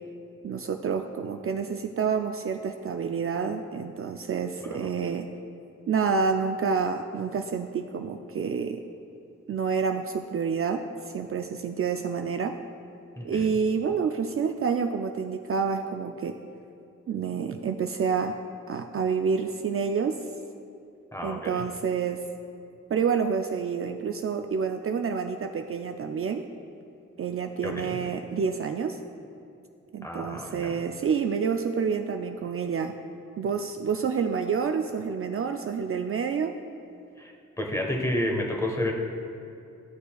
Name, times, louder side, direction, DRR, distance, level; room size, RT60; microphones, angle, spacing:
voice 1, 0.4-5.3 5.9-8.8 9.5-12.6 13.2-16.4 17.1-18.4 18.7-20.2 21.2-22.2 22.9-26.4 27.2-29.0 29.9-33.0 33.4-36.5, right 6 dB, 50° right, 5 dB, 0.4 m, -28 dB
voice 2, 13.2-13.6 21.1-21.6 27.6-28.0 30.0-30.8 37.2-38.9, left 1 dB, 10° left, 0 dB, 1.2 m, -31 dB
13.5 x 6.6 x 2.3 m, 2.6 s
cardioid pair, 80°, 30 cm